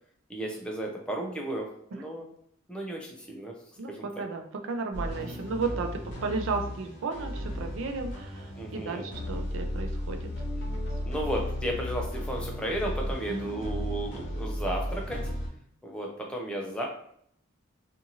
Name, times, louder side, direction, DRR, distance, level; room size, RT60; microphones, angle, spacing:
voice 1, 0.3-2.3 2.7-3.5 3.9-4.2 8.6-9.1 11.0-15.2 15.8-16.9, right 1 dB, 5° left, -1 dB, 0.4 m, -34 dB
voice 2, 3.8-8.5 8.7-10.2 13.3-13.5, right 4 dB, 70° right, 5 dB, 0.4 m, -33 dB
sound 1, 4.9-15.5, left 1 dB, 55° left, 1.0 m, -35 dB
2.7 x 2.5 x 2.8 m, 0.67 s
head